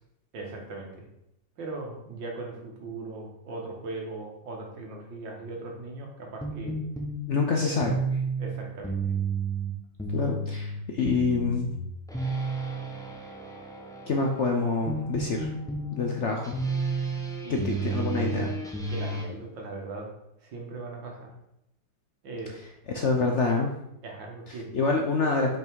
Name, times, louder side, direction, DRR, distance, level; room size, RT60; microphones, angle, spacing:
voice 1, 0.3-1.1 1.6-6.7 7.6-7.9 8.4-9.2 17.4-17.8 18.9-20.1 20.4-21.3 22.2-22.6 24.0-24.7, right 3 dB, 85° right, 0 dB, 2.2 m, -39 dB
sound 1, 6.4-19.2, right 3 dB, 5° left, 0.6 m, -32 dB
voice 2, 7.3-7.9 10.1-11.7 14.1-15.5 15.9-16.5 17.5-18.5 22.9-23.7 24.5-25.6, left 4 dB, 55° left, 2 dB, 0.8 m, -26 dB
5.6 x 5.3 x 4.6 m, 0.82 s
omnidirectional pair, 2.0 m